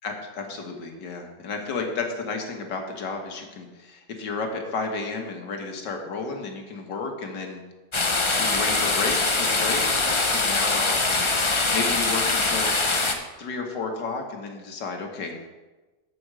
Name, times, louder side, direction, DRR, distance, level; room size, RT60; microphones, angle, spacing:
voice 1, 0.0-7.6 8.3-12.7 13.4-15.5, left 4 dB, 90° left, 3 dB, 2.0 m, -32 dB
sound 1, 7.9-13.1, left 3 dB, 30° left, 0.5 m, -23 dB
8.1 x 6.2 x 7.6 m, 1.2 s
omnidirectional pair, 1.8 m